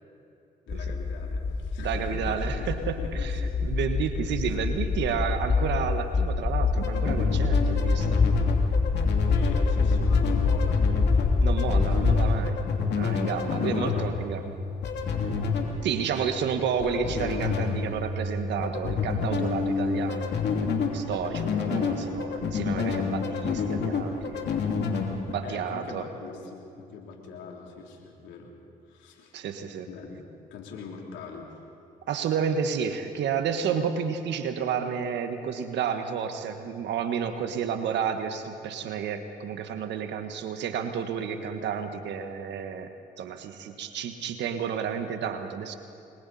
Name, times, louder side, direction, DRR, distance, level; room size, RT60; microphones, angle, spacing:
voice 1, 0.7-2.7 3.0-3.5 4.4-4.6 9.3-11.3 11.8-12.2 13.3-14.1 16.2-16.3 25.4-28.5 28.9-29.4 29.9-31.5, left 5 dB, 80° left, 0 dB, 3.4 m, -42 dB
sound 1, 0.7-12.4, left 4 dB, 30° left, 1.1 m, -26 dB
voice 2, 1.8-8.2 11.4-12.6 13.0-14.6 15.8-20.3 20.6-24.6 25.3-26.1 29.3-29.9 32.1-42.9 43.2-45.8, right 7 dB, 75° right, 7 dB, 1.5 m, -31 dB
sound 2, 6.8-25.3, left 4 dB, 65° left, 2.9 m, -29 dB
29.5 x 22.0 x 4.3 m, 2.7 s
supercardioid pair, 55°, 19 cm